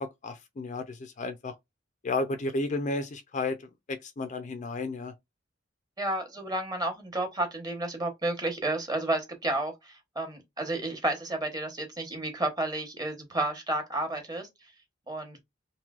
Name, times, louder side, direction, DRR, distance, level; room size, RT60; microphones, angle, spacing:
voice 1, 0.0-1.5 2.0-3.6 3.9-5.1, left 2 dB, 40° left, 0.4 m, -32 dB
voice 2, 6.0-14.5 15.1-15.4, right 2 dB, 20° right, 1.0 m, -31 dB
3.1 x 2.7 x 2.3 m
head